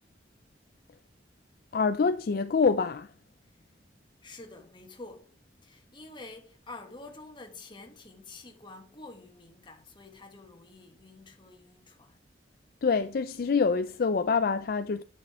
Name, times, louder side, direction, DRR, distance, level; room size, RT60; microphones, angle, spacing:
voice 1, 1.7-3.1 12.8-15.0, left 5 dB, 55° left, 0.4 m, -26 dB
voice 2, 4.2-5.3 5.6-12.2, left 2 dB, 25° left, 1.5 m, -48 dB
9.1 x 6.2 x 3.5 m
head